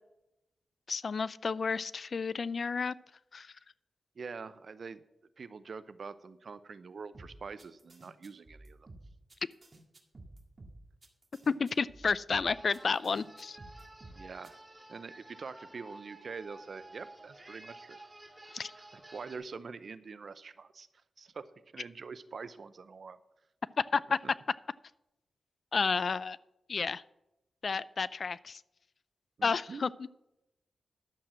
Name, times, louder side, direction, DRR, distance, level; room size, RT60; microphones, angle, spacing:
voice 1, 0.9-2.9 3.3-3.5 11.5-13.6 18.5-18.7 23.9-24.0 25.7-26.4 26.7-27.0 27.6-28.6 29.4-29.9, left 5 dB, 60° left, 20 dB, 0.4 m, -31 dB
voice 2, 4.2-5.0 5.4-8.9 14.1-14.6 14.9-18.0 18.7-20.9 21.2-21.5 21.7-23.2 29.4-29.9, right 5 dB, 65° right, 14 dB, 0.7 m, -45 dB
sound 1, 7.1-14.5, right 2 dB, 40° right, 1.9 m, -52 dB
sound 2, 12.5-19.4, right 2 dB, 15° right, 2.1 m, -52 dB
11.5 x 7.3 x 6.2 m, 0.90 s
cardioid pair, 60°, 0 cm